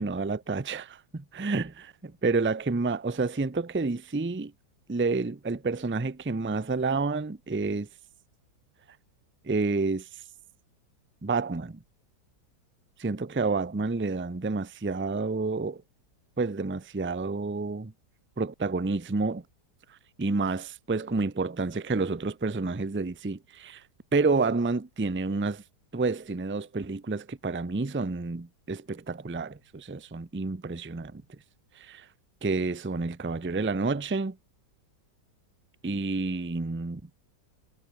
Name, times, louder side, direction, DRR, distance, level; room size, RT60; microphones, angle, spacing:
voice 1, 0.0-4.5 4.9-7.9 9.4-10.2 11.2-11.8 13.0-15.8 16.4-17.9 18.4-19.4 19.9-23.8 24.1-25.6 25.9-31.2 31.7-32.1 32.4-34.4 35.8-37.0, right 3 dB, 15° right, 0.3 m, -29 dB
omnidirectional pair, 1.9 m